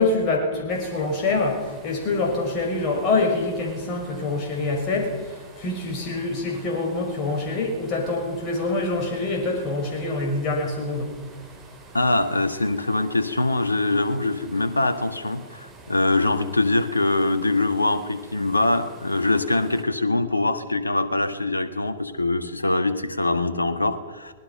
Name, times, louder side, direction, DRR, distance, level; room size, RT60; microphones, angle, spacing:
voice 1, 0.0-11.2, left 3 dB, 35° left, 0 dB, 6.1 m, -25 dB
sound 1, 0.7-19.8, right 3 dB, 15° right, 6.8 m, -49 dB
voice 2, 11.9-24.3, left 2 dB, 90° left, 10 dB, 1.6 m, -23 dB
25.0 x 20.5 x 5.8 m, 1.4 s
figure-of-eight pair, 105°, 0 cm